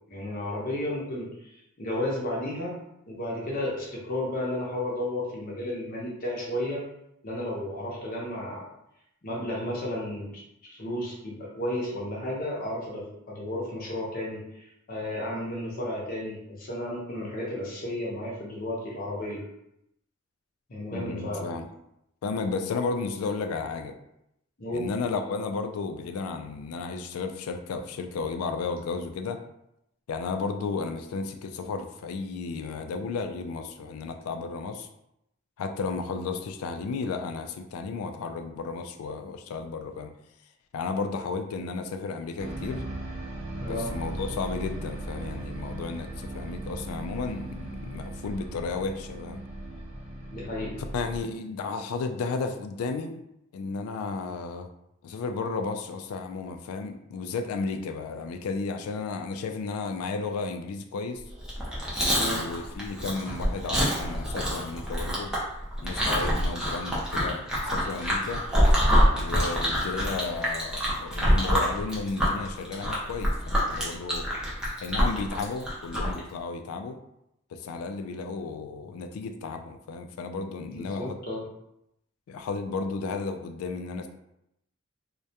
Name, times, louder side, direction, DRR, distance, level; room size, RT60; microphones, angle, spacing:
voice 1, 0.1-1.5 1.8-2.7 3.1-6.8 7.2-8.7 9.2-10.3 10.6-19.4 20.7-21.5 24.6-24.9 43.6-43.9 50.3-50.7 62.1-62.4 80.7-81.4, left 1 dB, 45° left, -4 dB, 0.6 m, -33 dB
voice 2, 20.9-21.7 22.2-23.9 24.7-29.4 30.1-34.9 35.6-40.1 40.7-42.8 43.7-49.4 50.8-53.2 53.5-54.7 55.0-61.2 62.1-65.3 65.8-68.4 69.1-74.3 74.8-77.0 77.5-81.2 82.3-84.1, left 4 dB, 85° left, 11 dB, 0.3 m, -33 dB
sound 1, 42.4-51.2, right 1 dB, 60° right, 0.6 m, -37 dB
Chewing mastication, 61.4-76.2, equal, 5° right, 0.5 m, -26 dB
2.3 x 2.1 x 2.7 m, 0.81 s
head